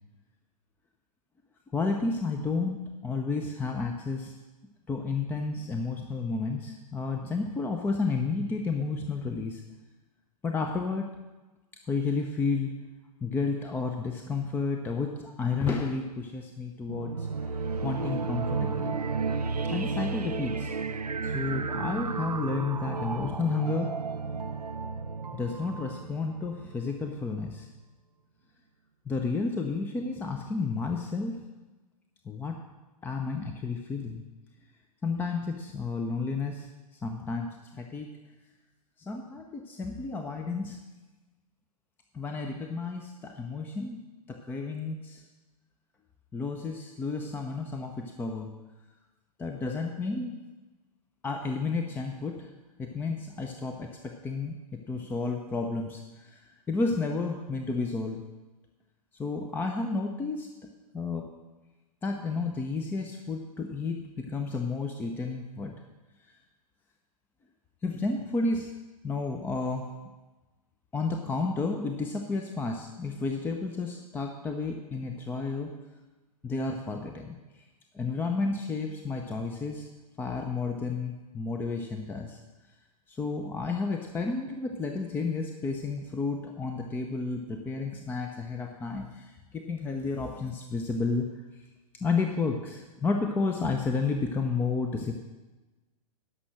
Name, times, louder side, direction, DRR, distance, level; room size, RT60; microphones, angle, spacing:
voice 1, 1.7-2.8 3.0-4.3 4.9-9.6 10.4-11.1 11.9-12.7 13.2-17.3 17.8-19.0 19.7-20.8 21.2-23.9 25.3-27.7 29.1-31.4 32.2-32.6 33.0-34.2 35.0-36.7 37.0-38.1 39.0-40.8 42.1-44.0 44.3-45.2 46.3-48.5 49.4-50.4 51.2-52.5 52.8-58.2 59.1-60.5 60.9-61.3 62.0-65.7 67.8-68.7 69.0-69.9 70.9-75.8 76.4-77.4 77.9-79.9 80.2-82.4 83.1-91.3 91.6-91.7 91.9-95.2, left 4 dB, 10° left, 4 dB, 0.6 m, -31 dB
sound 1, 16.9-27.1, right 4 dB, 85° right, 0.5 m, -33 dB
11.0 x 6.1 x 6.4 m, 1.2 s
figure-of-eight pair, 105°, 20 cm